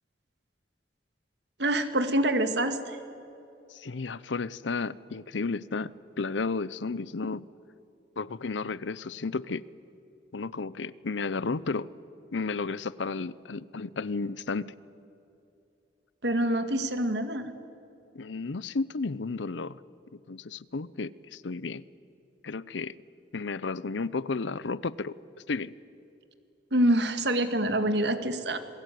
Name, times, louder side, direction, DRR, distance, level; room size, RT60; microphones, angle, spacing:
voice 1, 1.6-3.0 16.2-17.5 26.7-28.6, right 1 dB, 70° right, 9 dB, 2.0 m, -26 dB
voice 2, 3.7-5.9 6.2-7.4 8.2-9.6 10.3-11.9 12.3-14.7 18.1-19.8 20.1-21.8 22.4-23.0 23.3-25.1 25.5-25.7, left 4 dB, 90° left, 19 dB, 0.7 m, -33 dB
28.0 x 20.5 x 9.4 m, 2.8 s
head